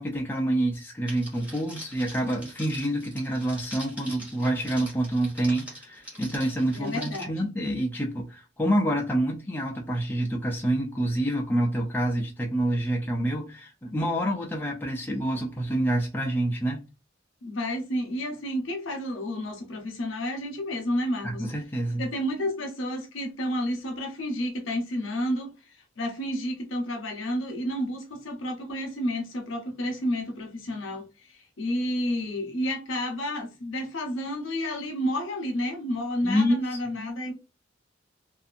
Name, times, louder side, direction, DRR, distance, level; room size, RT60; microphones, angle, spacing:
voice 1, 0.0-16.8 21.2-22.1 36.2-36.8, right 1 dB, 10° left, 0.5 m, -27 dB
Crackle, 1.1-7.2, equal, 5° right, 1.2 m, -44 dB
voice 2, 6.7-7.4 17.4-21.5 22.0-25.5 26.0-31.0 31.3-37.3, equal, 75° left, 0.8 m, -30 dB
2.7 x 2.5 x 2.5 m
head